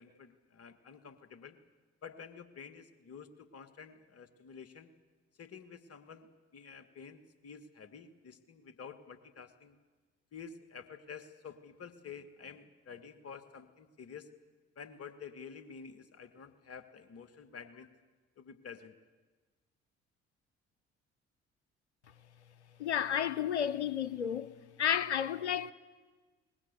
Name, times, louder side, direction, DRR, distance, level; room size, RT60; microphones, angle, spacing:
voice 1, 0.0-1.6 2.0-4.9 5.4-9.8 10.3-14.3 14.7-17.9 18.4-18.9, left 6 dB, 45° left, 1.7 m, -50 dB
voice 2, 22.8-24.5 24.8-25.7, left 9 dB, 90° left, 0.7 m, -31 dB
22.5 x 19.5 x 8.1 m
figure-of-eight pair, 50°, 33 cm